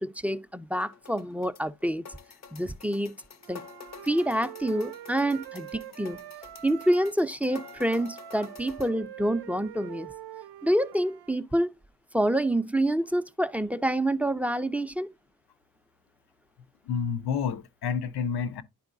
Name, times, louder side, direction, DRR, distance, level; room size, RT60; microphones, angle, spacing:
voice 1, 0.0-2.0 2.5-3.1 3.5-3.7 4.0-6.3 6.6-10.1 10.6-11.7 12.1-15.1, right 1 dB, 5° right, 0.3 m, -27 dB
sound 1, 0.7-8.9, left 6 dB, 45° left, 0.6 m, -48 dB
Wind instrument woodwind instrument, 3.4-7.2 7.5-11.3, right 12 dB, 90° right, 0.5 m, -44 dB
voice 2, 16.8-18.6, left 6 dB, 85° left, 0.7 m, -29 dB
10.5 x 4.5 x 2.5 m
cardioid pair, 70°, 38 cm